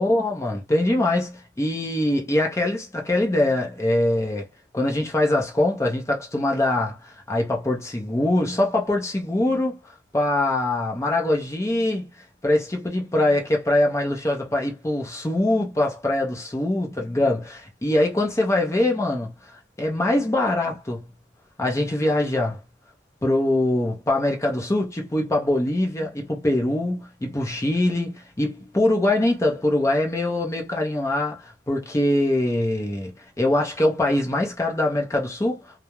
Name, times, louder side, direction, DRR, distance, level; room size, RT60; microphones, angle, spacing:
voice 1, 0.0-4.5 4.7-9.8 10.1-12.1 12.4-19.3 19.8-21.0 21.6-22.6 23.2-35.6, left 1 dB, 15° left, 0.5 m, -23 dB
2.3 x 2.0 x 2.9 m
head